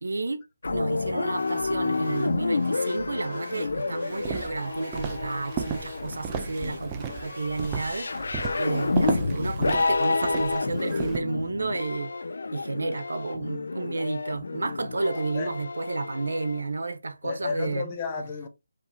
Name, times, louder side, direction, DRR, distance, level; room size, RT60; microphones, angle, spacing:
voice 1, 0.0-0.4 0.7-8.2 8.6-12.1 12.5-17.9, right 3 dB, 80° right, 0.9 m, -31 dB
sound 1, 0.6-16.6, left 3 dB, 70° left, 0.4 m, -30 dB
sound 2, 0.6-10.3, right 1 dB, 40° right, 2.5 m, -44 dB
Walk footsteps, 4.2-11.2, right 8 dB, 15° right, 0.3 m, -34 dB
voice 2, 15.0-15.5 17.2-18.5, left 5 dB, 20° left, 0.7 m, -33 dB
4.8 x 3.2 x 2.7 m
hypercardioid pair, 175°, 0 cm